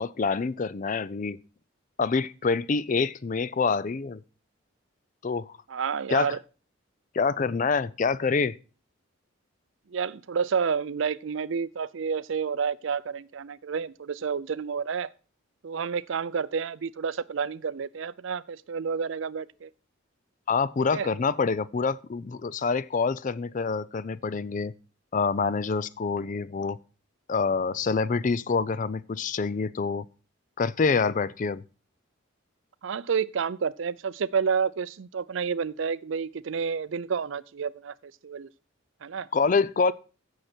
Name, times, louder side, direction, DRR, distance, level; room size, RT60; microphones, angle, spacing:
voice 1, 0.0-1.4 2.0-4.2 5.2-5.5 6.1-6.4 7.1-8.5 20.5-24.7 25.1-26.8 27.3-30.0 30.6-31.6 39.3-39.9, left 4 dB, 40° left, 0.4 m, -26 dB
voice 2, 5.7-6.4 9.9-15.1 15.6-19.7 20.9-21.1 32.8-38.5 39.0-39.3, right 6 dB, 70° right, 0.5 m, -30 dB
15.5 x 6.5 x 4.4 m
head